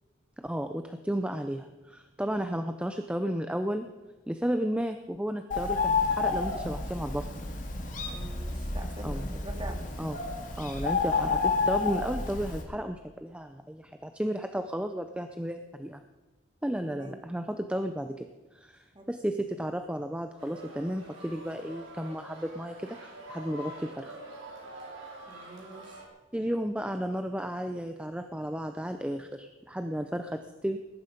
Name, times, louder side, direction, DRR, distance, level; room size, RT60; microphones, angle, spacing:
voice 1, 0.4-3.9 4.3-7.3 9.0-9.3 10.0-10.2 10.6-16.0 16.6-24.2 26.3-30.8, equal, 5° right, 7 dB, 0.6 m, -33 dB
Bird, 5.5-12.6, left 4 dB, 40° left, 2.2 m, -30 dB
voice 2, 8.1-9.8 16.9-17.1 18.9-19.1 25.3-26.0, right 2 dB, 25° right, 2 dB, 2.3 m, -45 dB
sound 1, 20.4-26.1, right 1 dB, 75° right, 4.2 m, -46 dB
20.0 x 11.0 x 5.3 m, 1.2 s
head